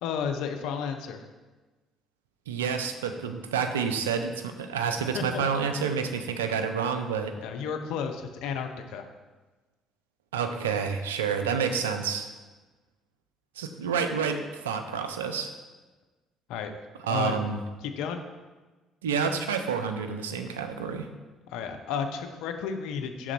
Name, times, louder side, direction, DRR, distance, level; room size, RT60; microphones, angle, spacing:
voice 1, 0.0-1.2 5.1-5.4 7.4-9.1 16.5-16.7 17.1-17.4 17.8-18.2 21.5-23.3, left 7 dB, 70° left, 6 dB, 0.5 m, -32 dB
voice 2, 2.5-7.3 10.3-12.3 13.6-15.6 17.0-17.6 19.0-21.1, right 6 dB, 85° right, 7 dB, 0.4 m, -29 dB
6.0 x 3.7 x 4.6 m, 1.3 s
hypercardioid pair, 50°, 0 cm